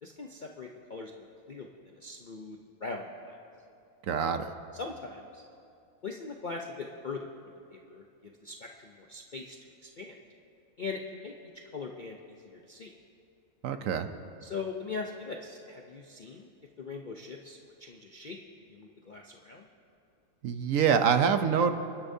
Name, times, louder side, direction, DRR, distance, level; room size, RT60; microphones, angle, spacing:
voice 1, 0.0-3.4 4.7-5.4 6.0-10.2 10.8-11.3 11.7-12.9 14.4-16.5 16.8-18.4 18.7-19.7, left 4 dB, 55° left, 1 dB, 0.5 m, -41 dB
voice 2, 4.1-4.5 13.6-14.1 20.4-21.7, right 7 dB, 65° right, 8 dB, 0.9 m, -25 dB
29.5 x 10.0 x 2.7 m, 2.6 s
omnidirectional pair, 1.6 m